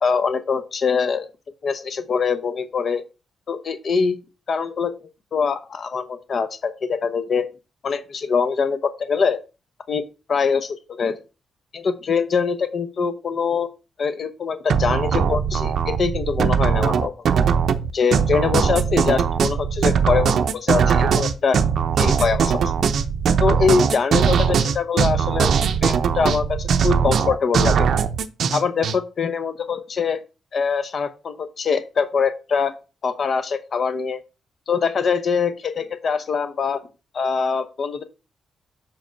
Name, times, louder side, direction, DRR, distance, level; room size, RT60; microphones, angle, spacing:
voice 1, 0.0-1.3 1.6-3.0 3.5-4.2 4.5-4.9 5.3-7.5 7.8-9.4 9.9-10.0 10.3-11.2 11.7-13.7 14.0-17.1 17.9-21.6 22.0-22.6 23.4-25.5 25.8-27.9 28.5-30.2 30.5-32.7 33.0-34.2 34.7-36.8 37.1-38.0, left 5 dB, 45° left, 11 dB, 0.9 m, -23 dB
sound 1, 14.7-29.0, right 7 dB, 60° right, 0.6 m, -20 dB
6.2 x 5.0 x 4.5 m, 0.31 s
cardioid pair, 140°, 0 cm